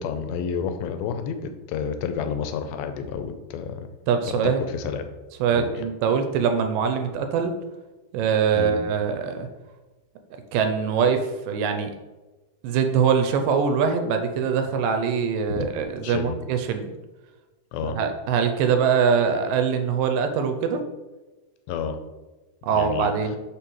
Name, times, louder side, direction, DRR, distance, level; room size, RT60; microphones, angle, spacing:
voice 1, 0.0-3.9 4.3-5.1 5.6-5.7 8.5-8.8 15.6-15.7 16.0-16.4 17.7-18.0 21.7-22.0 22.7-23.1, left 6 dB, 90° left, 8 dB, 2.4 m, -30 dB
voice 2, 4.1-4.6 5.4-7.5 8.1-9.5 10.5-11.9 12.6-16.9 17.8-20.8 22.7-23.4, right 6 dB, 80° right, 6 dB, 2.1 m, -23 dB
6.6 x 5.6 x 3.1 m, 1.2 s
omnidirectional pair, 4.1 m